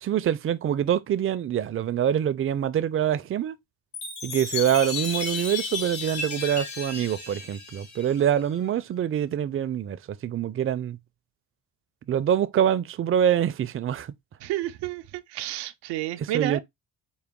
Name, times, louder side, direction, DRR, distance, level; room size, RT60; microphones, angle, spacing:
voice 1, 0.0-3.6 4.2-11.0 12.1-14.1 16.2-16.6, right 9 dB, 35° right, 0.4 m, -25 dB
Chime, 3.9-8.5, left 5 dB, 70° left, 1.8 m, -34 dB
voice 2, 14.4-16.6, right 14 dB, 90° right, 0.5 m, -31 dB
4.8 x 2.2 x 3.5 m
supercardioid pair, 70°, 39 cm